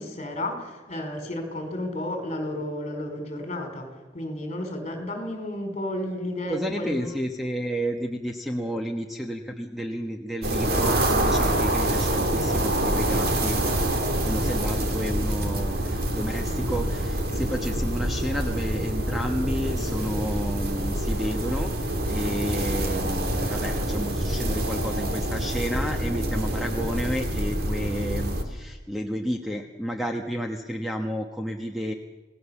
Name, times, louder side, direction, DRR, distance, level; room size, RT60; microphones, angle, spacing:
voice 1, 0.0-7.1, left 1 dB, 35° left, 5 dB, 4.9 m, -32 dB
voice 2, 6.5-13.6 14.2-31.9, equal, ahead, 3 dB, 1.2 m, -31 dB
sound 1, 10.4-28.4, right 1 dB, 50° right, 2.6 m, -26 dB
28.0 x 18.5 x 7.2 m, 1.2 s
head